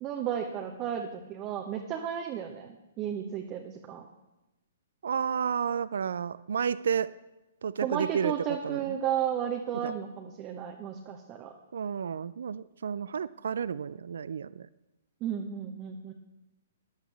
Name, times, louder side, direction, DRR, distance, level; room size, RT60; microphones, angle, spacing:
voice 1, 0.0-4.1 7.8-11.5 15.2-16.1, right 9 dB, 30° right, 2 dB, 0.9 m, -33 dB
voice 2, 5.0-7.1 7.6-9.0 9.8-9.9 11.7-14.7, right 7 dB, 60° right, 17 dB, 0.4 m, -31 dB
14.5 x 11.0 x 3.4 m, 0.99 s
figure-of-eight pair, 120°, 0 cm